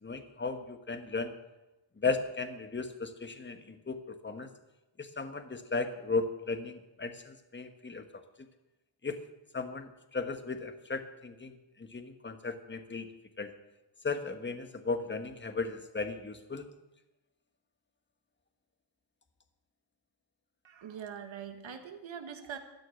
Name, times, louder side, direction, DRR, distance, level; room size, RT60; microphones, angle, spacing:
voice 1, 0.0-1.3 2.0-4.5 5.0-8.2 9.0-9.2 9.5-13.1 13.4-13.5 14.0-16.7, left 4 dB, 20° left, 8 dB, 1.3 m, -36 dB
voice 2, 20.6-22.6, right 8 dB, 65° right, 6 dB, 1.8 m, -43 dB
13.0 x 6.3 x 9.7 m, 1.0 s
cardioid pair, 80°, 49 cm